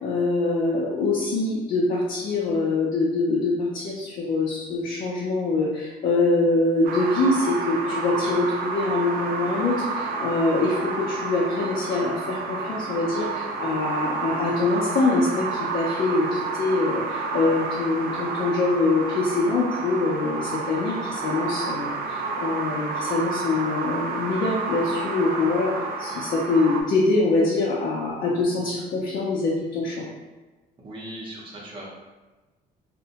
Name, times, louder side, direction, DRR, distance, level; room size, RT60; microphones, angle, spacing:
voice 1, 0.0-30.0, left 3 dB, 55° left, -5 dB, 0.5 m, -24 dB
sound 1, 6.8-26.8, right 4 dB, 60° right, 0.4 m, -30 dB
voice 2, 30.8-31.9, right 1 dB, 30° right, -4 dB, 0.7 m, -38 dB
2.6 x 2.1 x 2.8 m, 1.2 s
cardioid pair, 110°, 17 cm